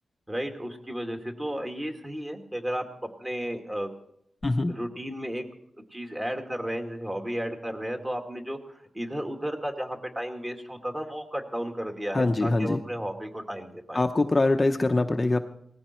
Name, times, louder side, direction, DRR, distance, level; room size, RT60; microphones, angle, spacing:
voice 1, 0.3-3.9 4.7-5.4 5.9-14.0, equal, 15° right, 4 dB, 2.3 m, -33 dB
voice 2, 4.4-4.7 12.1-12.8 13.9-15.4, left 2 dB, 25° left, 5 dB, 0.8 m, -23 dB
19.5 x 15.0 x 4.5 m, 0.72 s
wide cardioid pair, 100°, 0 cm